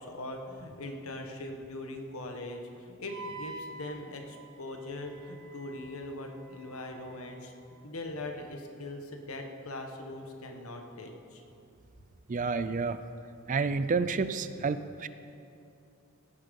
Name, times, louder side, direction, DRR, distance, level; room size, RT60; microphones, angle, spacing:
voice 1, 0.0-7.5 7.8-11.4, left 2 dB, 70° left, 3 dB, 1.4 m, -41 dB
Wind instrument woodwind instrument, 3.1-7.7, right 3 dB, 55° right, 1.1 m, -48 dB
voice 2, 12.3-13.0 13.5-15.1, right 4 dB, 35° right, 12 dB, 0.4 m, -29 dB
17.0 x 9.0 x 5.3 m, 2.6 s
head